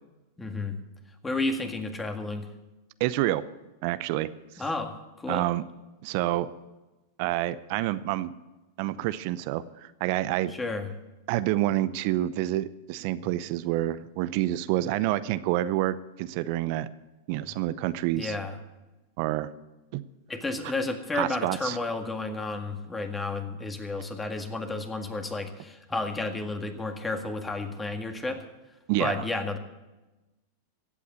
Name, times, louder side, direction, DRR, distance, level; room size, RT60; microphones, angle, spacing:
voice 1, 0.4-0.8 1.2-2.5 4.6-5.5 10.5-10.9 18.1-18.6 20.3-28.4 29.0-29.6, left 3 dB, 15° left, 6 dB, 1.9 m, -32 dB
voice 2, 3.0-3.4 3.8-4.3 5.3-5.6 6.0-6.5 7.2-8.3 8.8-10.5 11.3-16.9 17.3-18.3 19.2-19.5 19.9-20.0 21.1-21.8 28.9-29.2, right 15 dB, 55° right, 15 dB, 0.6 m, -28 dB
15.5 x 8.4 x 8.2 m, 1.1 s
hypercardioid pair, 105°, 0 cm